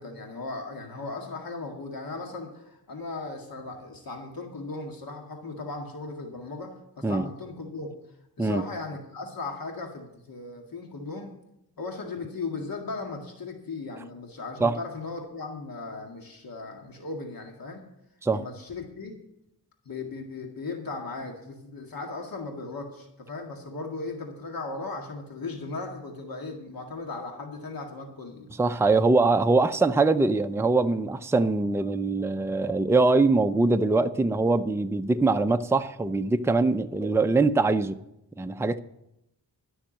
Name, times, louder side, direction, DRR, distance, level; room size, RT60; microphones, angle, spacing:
voice 1, 0.0-7.9 8.4-11.3 11.8-17.8 18.3-19.2 19.9-28.5, left 3 dB, 60° left, 2.1 m, -37 dB
voice 2, 28.6-38.0 38.4-38.8, right 3 dB, 5° right, 0.5 m, -23 dB
13.5 x 6.4 x 8.8 m
wide cardioid pair, 90°, 40 cm